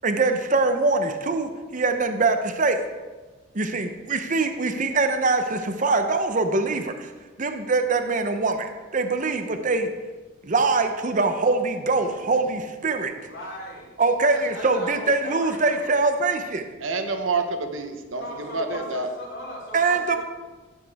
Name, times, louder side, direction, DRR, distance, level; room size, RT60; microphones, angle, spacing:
voice 1, 0.0-2.9 3.5-7.1 7.4-9.9 10.4-13.1 14.0-16.7 19.7-20.2, right 3 dB, 40° right, 7 dB, 0.8 m, -23 dB
voice 2, 13.1-13.9 14.3-15.9 18.2-20.2, equal, 60° left, -5 dB, 4.0 m, -38 dB
voice 3, 16.8-19.1, right 3 dB, 80° right, 6 dB, 1.2 m, -28 dB
16.5 x 7.3 x 3.6 m, 1.3 s
head